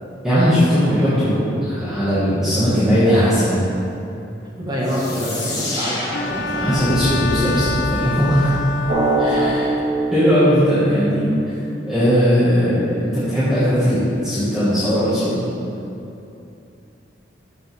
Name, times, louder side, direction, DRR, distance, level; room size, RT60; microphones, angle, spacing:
voice 1, 0.2-3.5 6.5-8.5 9.2-9.7 10.1-11.3 11.9-15.4, equal, 5° right, -14 dB, 1.8 m, -18 dB
voice 2, 4.6-6.7 9.0-9.6, equal, 20° right, -5 dB, 1.5 m, -26 dB
sound 1, 4.8-9.4, equal, 20° left, 1.6 m, -28 dB
Bowed string instrument, 6.1-9.8, left 3 dB, 75° left, 0.5 m, -27 dB
Drum, 8.9-11.5, right 2 dB, 60° right, 1.8 m, -22 dB
13.0 x 5.8 x 3.5 m, 2.7 s
head